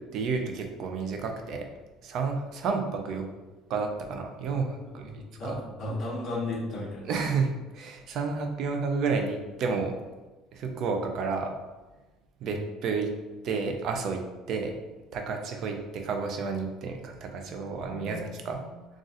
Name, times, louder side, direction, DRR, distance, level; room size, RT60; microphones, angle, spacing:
voice 1, 0.1-1.7 2.0-3.3 3.7-5.1 5.4-5.6 7.1-9.9 10.5-11.5 12.4-13.1 13.4-14.7 15.1-18.6, right 4 dB, 45° right, 4 dB, 0.4 m, -31 dB
voice 2, 4.8-7.1 12.4-12.6 17.7-18.7, left 2 dB, 25° left, -8 dB, 1.0 m, -36 dB
4.0 x 2.4 x 2.5 m, 1.2 s
cardioid pair, 165°, 0 cm